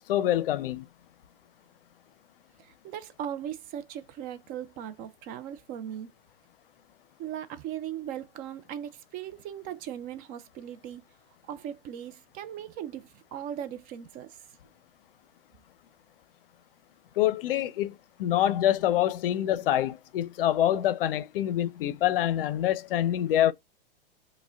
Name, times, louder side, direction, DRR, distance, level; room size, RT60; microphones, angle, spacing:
voice 1, 0.1-0.9 17.2-23.5, left 12 dB, 70° left, 0.5 m, -26 dB
voice 2, 2.6-6.1 7.2-11.0 11.4-14.4 19.3-19.4, right 10 dB, 30° right, 0.4 m, -38 dB
4.7 x 2.1 x 2.3 m
hypercardioid pair, 120°, 29 cm